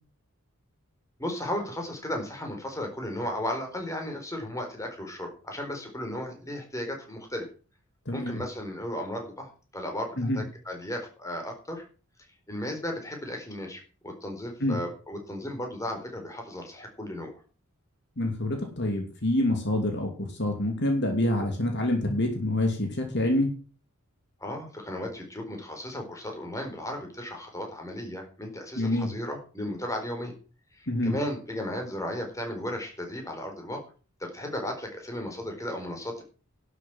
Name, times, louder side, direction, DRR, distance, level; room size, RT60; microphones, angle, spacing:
voice 1, 1.2-7.4 8.1-11.8 12.5-17.3 24.4-30.3 30.7-33.8 34.2-36.2, left 1 dB, 15° left, 3 dB, 4.3 m, -35 dB
voice 2, 8.1-8.4 10.2-10.4 14.6-14.8 18.2-23.5 28.8-29.1 30.9-31.1, left 1 dB, 50° left, 4 dB, 2.8 m, -26 dB
12.0 x 8.4 x 7.6 m, 0.37 s
head